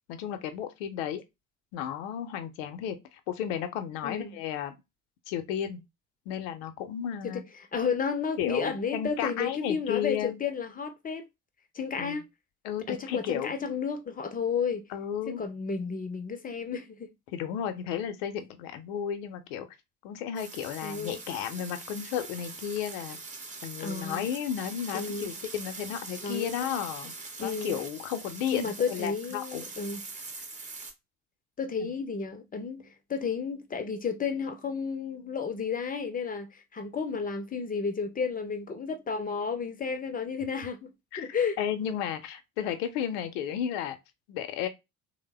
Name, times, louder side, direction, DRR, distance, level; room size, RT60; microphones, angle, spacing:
voice 1, 0.1-1.2 1.7-3.0 3.3-4.8 5.3-5.8 6.3-7.4 8.4-10.4 12.0-12.2 12.6-13.5 14.9-15.4 17.3-19.7 20.0-23.2 23.6-27.1 27.4-29.6 31.8-31.9 41.1-44.0 44.3-44.7, left 9 dB, 60° left, 0.7 m, -33 dB
voice 2, 4.0-4.4 7.2-7.4 7.7-11.2 11.7-12.2 12.9-14.8 15.3-17.1 20.8-21.2 23.8-24.3 24.9-25.4 26.2-26.8 27.4-27.8 28.5-30.0 31.6-40.9 41.2-41.6, left 5 dB, 20° left, 0.6 m, -32 dB
sound 1, 20.4-30.9, right 3 dB, 15° right, 0.8 m, -43 dB
3.2 x 2.1 x 3.3 m
figure-of-eight pair, 55°, 44 cm